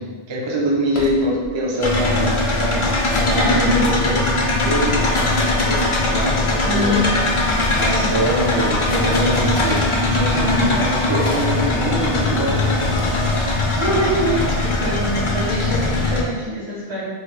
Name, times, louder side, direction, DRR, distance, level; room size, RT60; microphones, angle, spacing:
voice 1, 0.0-4.2 4.6-7.0 7.7-13.1, right 1 dB, 40° right, -3 dB, 0.4 m, -24 dB
sound 1, 0.9-1.6 2.6-4.1 4.9-6.5 7.1-8.1 8.6-10.0 11.2-11.6 12.7-13.0 14.1-14.7, left 2 dB, 80° left, 0.9 m, -32 dB
sound 2, 1.8-16.2, left 2 dB, 55° left, 0.3 m, -20 dB
voice 2, 3.4-3.8 6.6-7.5 7.8-8.1 10.5-10.8 13.8-17.0, left 1 dB, 70° right, -8 dB, 1.4 m, -24 dB
4.1 x 2.1 x 3.0 m, 1.4 s
omnidirectional pair, 1.1 m